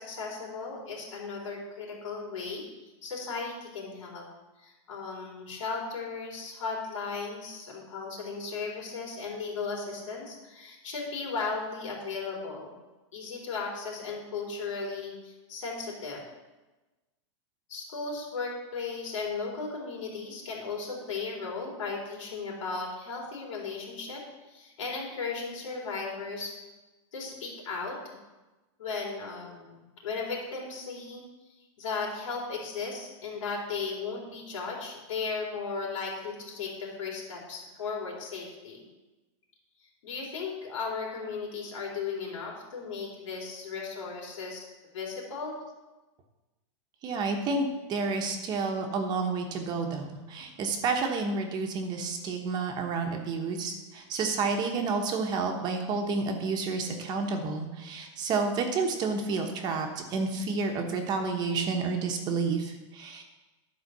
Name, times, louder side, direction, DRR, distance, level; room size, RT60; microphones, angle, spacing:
voice 1, 0.0-2.6 3.0-4.2 4.6-12.7 13.1-16.2 17.7-24.2 24.5-26.5 27.1-28.2 28.8-31.2 31.8-38.8 40.0-44.6 44.9-45.5, left 4 dB, 85° left, -2 dB, 4.1 m, -36 dB
voice 2, 47.0-63.2, right 4 dB, 25° right, 3 dB, 1.2 m, -30 dB
11.5 x 5.2 x 6.7 m, 1.1 s
supercardioid pair, 160°, 16 cm